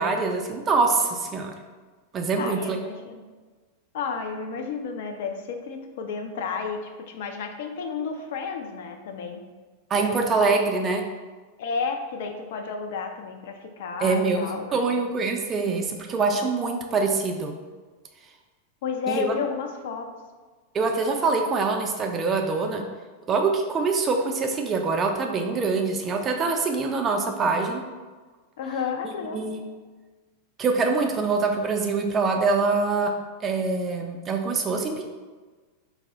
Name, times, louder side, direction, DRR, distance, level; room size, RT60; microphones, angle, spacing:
voice 1, 0.0-1.5 2.1-2.8 9.9-11.0 14.0-14.4 14.7-17.5 19.1-19.3 20.7-22.8 23.3-27.8 29.0-29.6 30.6-33.1 33.4-35.1, right 4 dB, 25° right, 3 dB, 0.3 m, -24 dB
voice 2, 2.4-3.2 3.9-9.4 11.6-14.9 18.8-20.1 28.6-29.4, left 5 dB, 55° left, 4 dB, 0.3 m, -32 dB
2.6 x 2.0 x 3.5 m, 1.4 s
figure-of-eight pair, 90°, 0 cm